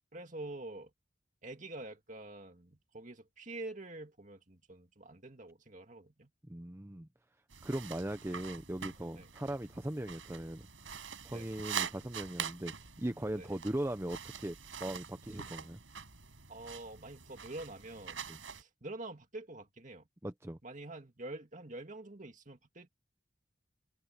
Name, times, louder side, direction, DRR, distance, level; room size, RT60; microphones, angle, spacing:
voice 1, 0.1-0.9 1.4-6.3 9.2-9.3 11.3-11.5 13.4-13.5 16.5-18.2 18.5-20.1 20.6-22.9, right 2 dB, 40° right, 2.3 m, -46 dB
voice 2, 6.5-7.1 7.6-10.7 11.2-15.8 18.3-18.4 20.2-20.6, right 1 dB, 15° right, 0.6 m, -39 dB
sound 1, 7.5-18.6, right 7 dB, 80° right, 5.3 m, -45 dB
head